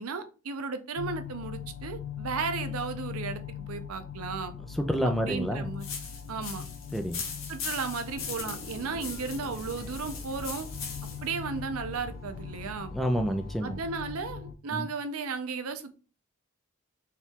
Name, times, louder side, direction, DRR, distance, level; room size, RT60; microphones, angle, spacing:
voice 1, 0.0-4.5 5.2-5.9 6.3-6.6 7.5-10.7 11.2-12.9 13.6-16.0, right 5 dB, 85° right, 0.6 m, -35 dB
sound 1, 1.0-14.6, left 8 dB, 85° left, 0.4 m, -41 dB
voice 2, 4.7-5.7 6.9-7.2 12.9-13.8 14.7-14.9, equal, ahead, 0.3 m, -28 dB
sound 2, 5.8-11.3, left 5 dB, 65° left, 1.0 m, -40 dB
sound 3, 8.1-14.4, equal, 40° left, 1.0 m, -47 dB
4.4 x 2.3 x 3.6 m
head